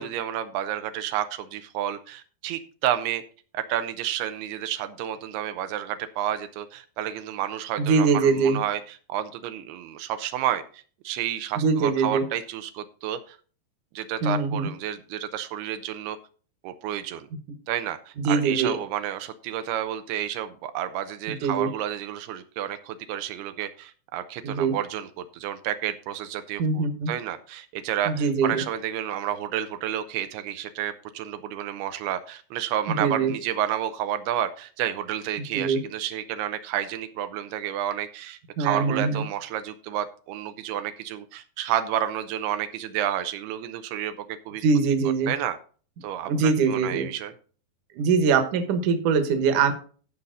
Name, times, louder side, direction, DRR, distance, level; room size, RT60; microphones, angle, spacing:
voice 1, 0.0-3.2 3.5-8.8 9.1-13.4 13.9-16.2 16.6-17.3 17.7-44.6 45.3-45.6 46.0-47.3, right 11 dB, 85° right, 9 dB, 2.7 m, -30 dB
voice 2, 7.8-8.6 11.6-12.2 14.2-14.7 18.2-18.8 21.3-21.7 24.4-24.8 26.6-27.1 28.0-28.6 32.9-33.3 35.5-35.8 38.6-39.2 44.6-45.3 46.3-47.1 47.9-49.7, right 5 dB, 60° right, 7 dB, 2.4 m, -23 dB
15.0 x 5.5 x 3.9 m, 0.40 s
omnidirectional pair, 4.6 m